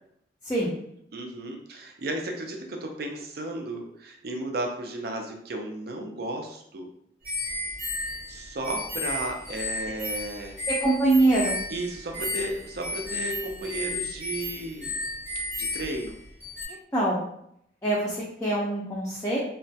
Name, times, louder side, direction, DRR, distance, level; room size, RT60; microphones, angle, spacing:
voice 1, 1.1-6.9 8.3-10.6 11.7-15.0 15.6-16.2, right 1 dB, 60° right, 2 dB, 0.4 m, -34 dB
sound 1, 7.2-16.7, left 2 dB, 10° right, 0.7 m, -33 dB
voice 2, 10.7-11.6 16.9-17.3 17.8-19.4, right 2 dB, 15° left, -6 dB, 0.4 m, -24 dB
2.3 x 2.1 x 2.6 m, 0.73 s
head